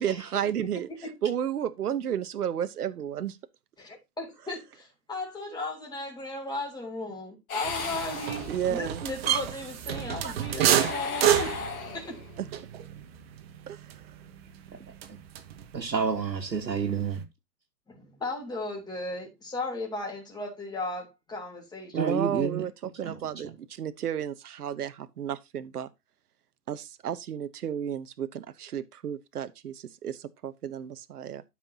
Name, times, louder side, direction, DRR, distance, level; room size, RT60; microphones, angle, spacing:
voice 1, 0.0-3.4 8.5-9.0 12.4-12.6 13.7-14.2 21.9-25.9 26.7-31.4, right 9 dB, 65° right, 1.0 m, -32 dB
voice 2, 3.8-11.5 11.9-12.2 17.9-22.3, left 2 dB, 10° left, 3.6 m, -36 dB
sound 1, 7.5-9.0 10.6-12.4, left 6 dB, 55° left, 2.7 m, -36 dB
sound 2, 7.6-15.8 16.1-17.2, right 10 dB, 35° right, 1.3 m, -30 dB
voice 3, 15.7-17.3 21.9-22.6 23.0-23.2, right 6 dB, 85° right, 1.7 m, -29 dB
12.0 x 6.0 x 2.8 m
figure-of-eight pair, 130°, 49 cm